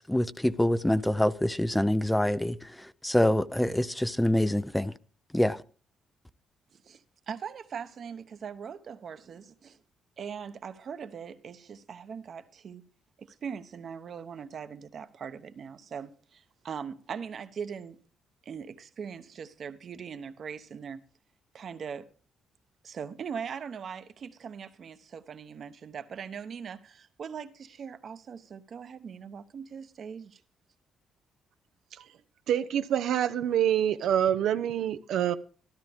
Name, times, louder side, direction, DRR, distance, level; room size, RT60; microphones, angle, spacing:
voice 1, 0.0-2.6 3.0-4.9 5.3-5.6, left 1 dB, 5° left, 0.5 m, -25 dB
voice 2, 6.7-9.8 10.2-12.8 13.2-18.0 18.4-21.0 21.5-22.1 22.8-30.4, right 6 dB, 55° right, 1.0 m, -41 dB
voice 3, 32.5-35.4, right 10 dB, 80° right, 0.6 m, -26 dB
13.5 x 12.5 x 3.5 m
cardioid pair, 90°, 0 cm